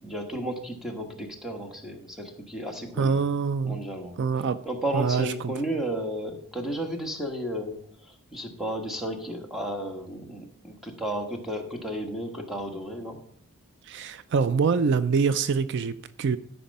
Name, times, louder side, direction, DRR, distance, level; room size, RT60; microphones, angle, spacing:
voice 1, 0.0-3.1 3.6-4.1 4.6-13.2, right 1 dB, ahead, 1 dB, 1.4 m, -33 dB
voice 2, 3.0-3.8 4.2-4.6 4.9-5.5 13.8-16.4, right 5 dB, 55° right, 14 dB, 0.4 m, -25 dB
13.0 x 5.2 x 5.4 m, 0.63 s
head